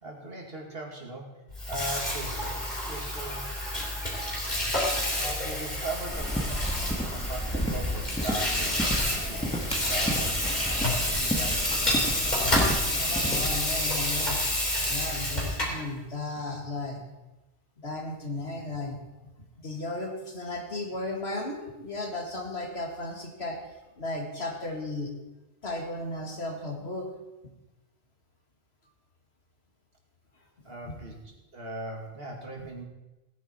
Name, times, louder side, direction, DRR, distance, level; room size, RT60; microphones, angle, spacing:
voice 1, 0.0-2.6 2.9-3.5 5.2-6.5 7.1-12.8 30.6-32.8, right 2 dB, 55° right, 0 dB, 2.5 m, -39 dB
Water tap faucet / Sink (filling or washing), 1.5-15.8, left 1 dB, 40° left, 4.0 m, -29 dB
sound 1, 6.1-13.6, equal, 5° left, 1.7 m, -32 dB
voice 2, 12.9-14.4 14.8-17.0 17.8-19.0 19.6-23.6 24.0-25.1 25.6-27.1 30.9-31.0, left 2 dB, 60° left, 1 dB, 2.4 m, -35 dB
17.5 x 9.7 x 4.5 m, 1.0 s
omnidirectional pair, 1.2 m